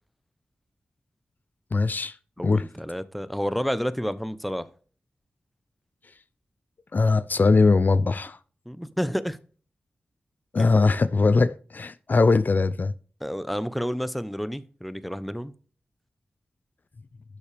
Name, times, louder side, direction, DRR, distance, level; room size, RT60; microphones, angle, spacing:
voice 1, 1.7-2.2 2.4-2.7 6.9-8.4 10.5-12.9, left 3 dB, 50° left, 0.5 m, -21 dB
voice 2, 2.4-4.7 8.7-9.4 10.6-10.7 13.2-15.5, equal, ahead, 0.8 m, -30 dB
12.0 x 7.2 x 3.4 m
cardioid pair, 45°, 4 cm